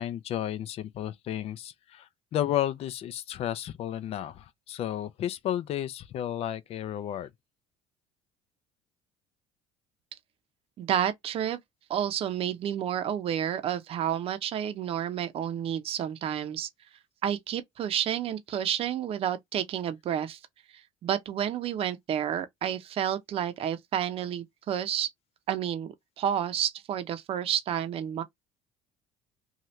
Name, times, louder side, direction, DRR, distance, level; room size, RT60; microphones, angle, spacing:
voice 1, 0.0-7.3, left 11 dB, 55° left, 0.5 m, -32 dB
voice 2, 10.8-11.6 11.9-16.7 17.2-20.4 20.7-25.1 25.5-28.2, right 9 dB, 50° right, 0.7 m, -30 dB
2.8 x 2.4 x 3.1 m
supercardioid pair, 85°, 12 cm